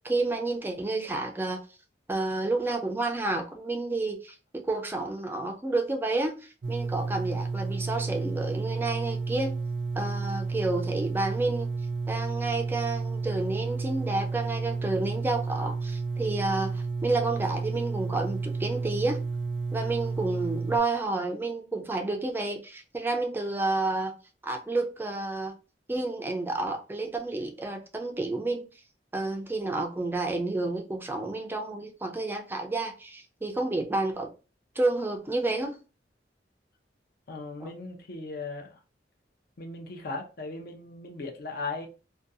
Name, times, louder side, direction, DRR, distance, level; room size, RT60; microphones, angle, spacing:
voice 1, 0.0-1.6 2.1-9.6 10.0-11.7 12.1-19.2 19.7-24.1 24.4-25.5 25.9-28.6 29.1-34.3 34.8-35.8 37.6-37.7, right 2 dB, 10° right, 0.3 m, -30 dB
sound 1, 6.6-20.8, right 4 dB, 70° right, 0.5 m, -31 dB
voice 2, 37.3-38.8 39.6-41.9, left 3 dB, 55° left, 0.6 m, -37 dB
2.5 x 2.2 x 2.6 m
head